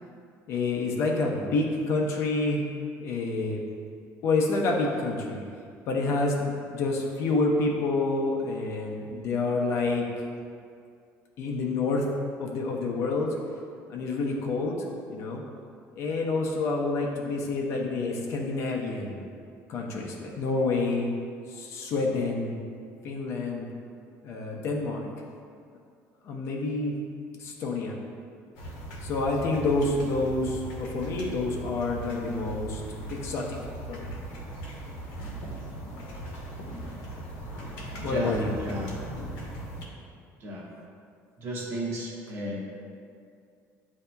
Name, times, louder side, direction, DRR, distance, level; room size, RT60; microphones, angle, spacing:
voice 1, 0.5-2.7 3.0-3.6 4.2-5.4 5.9-10.1 11.4-12.1 12.4-13.3 13.9-14.8 15.1-15.4 16.0-19.2 19.7-21.1 21.5-22.5 23.0-23.7 24.2-25.1 26.2-27.0 27.4-28.0 29.0-33.6 33.9-34.1 37.8-38.5, left 3 dB, 50° left, 0 dB, 0.6 m, -28 dB
sound 1, 28.5-39.8, right 1 dB, 90° left, 0.9 m, -38 dB
voice 2, 38.0-38.9 40.4-40.7 41.4-42.6, right 1 dB, 45° right, -3 dB, 0.8 m, -34 dB
7.9 x 2.7 x 2.2 m, 2.3 s
cardioid pair, 155°, 6 cm